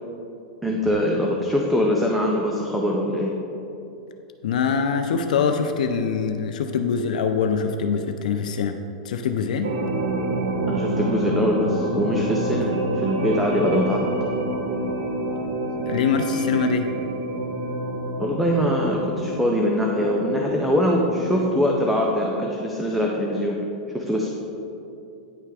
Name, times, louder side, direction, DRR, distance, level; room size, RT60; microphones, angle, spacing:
voice 1, 0.6-3.3 10.7-14.1 18.2-23.6 23.9-24.3, equal, ahead, -1 dB, 0.4 m, -23 dB
voice 2, 4.4-8.8 9.0-9.7 15.9-17.0, left 6 dB, 85° left, 6 dB, 0.4 m, -23 dB
sound 1, 9.6-21.7, right 1 dB, 80° right, 1.1 m, -27 dB
9.2 x 3.3 x 4.8 m, 2.8 s
supercardioid pair, 155°, 4 cm